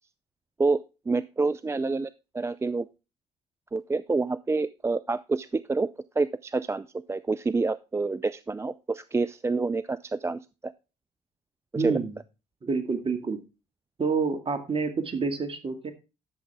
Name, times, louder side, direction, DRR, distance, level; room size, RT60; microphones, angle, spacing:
voice 1, 1.1-2.9 3.7-5.9 6.2-10.7 11.7-12.0, right 3 dB, 20° right, 17 dB, 0.4 m, -28 dB
voice 2, 11.8-12.2 12.6-13.4 14.0-15.9, right 4 dB, 35° right, 7 dB, 2.2 m, -28 dB
12.0 x 7.1 x 3.5 m, 0.30 s
hypercardioid pair, 55°, 15 cm